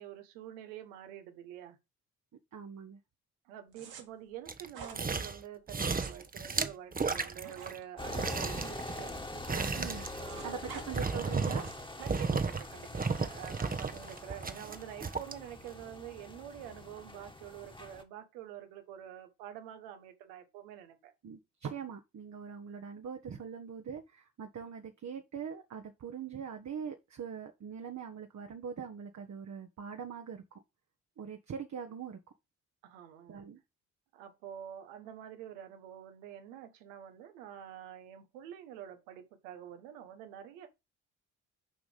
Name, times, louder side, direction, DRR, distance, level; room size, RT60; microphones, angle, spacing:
voice 1, 0.0-1.8 3.4-9.2 10.2-10.8 12.0-21.1 32.8-33.5 34.1-40.7, right 10 dB, 80° right, 1.4 m, -47 dB
voice 2, 2.5-3.0 9.8-10.1 10.4-11.7 21.2-30.6 31.2-32.2 33.3-33.6, right 7 dB, 45° right, 1.3 m, -42 dB
sound 1, 3.7-4.0 4.7-5.0 5.7-8.7 9.0-9.8 10.0-10.9 11.4-11.9, right 6 dB, 65° right, 2.4 m, -49 dB
sound 2, 4.5-5.4 5.7-7.8 8.1-11.8 12.1-12.6 12.9-15.3 15.8-15.9, right 4 dB, 20° right, 1.0 m, -34 dB
sound 3, 8.0-18.0, left 2 dB, 10° left, 1.7 m, -45 dB
7.0 x 5.2 x 5.1 m
hypercardioid pair, 45°, 40 cm